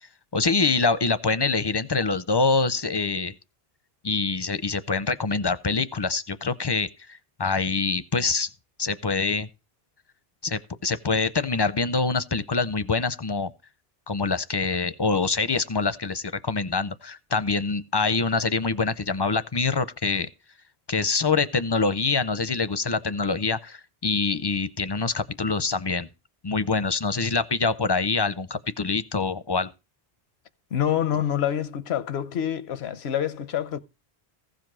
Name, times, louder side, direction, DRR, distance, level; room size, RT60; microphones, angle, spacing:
voice 1, 0.3-3.3 4.0-8.5 8.8-9.5 10.4-13.5 14.1-20.3 20.9-26.1 26.4-29.7, left 4 dB, 35° left, 0.4 m, -25 dB
voice 2, 30.7-33.8, left 10 dB, 90° left, 1.0 m, -26 dB
15.0 x 5.1 x 6.0 m
omnidirectional pair, 1.1 m